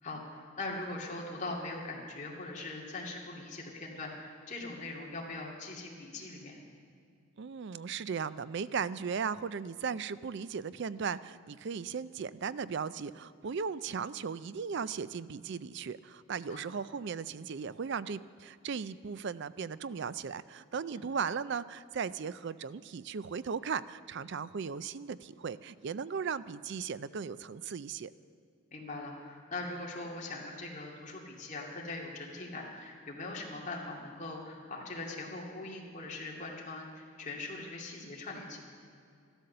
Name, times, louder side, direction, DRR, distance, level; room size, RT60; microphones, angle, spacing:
voice 1, 0.0-6.6 16.5-16.6 20.9-21.0 28.7-38.6, left 2 dB, 35° left, -2 dB, 2.3 m, -41 dB
voice 2, 7.4-28.1, right 6 dB, 55° right, 16 dB, 0.4 m, -37 dB
14.0 x 12.5 x 6.7 m, 2.3 s
head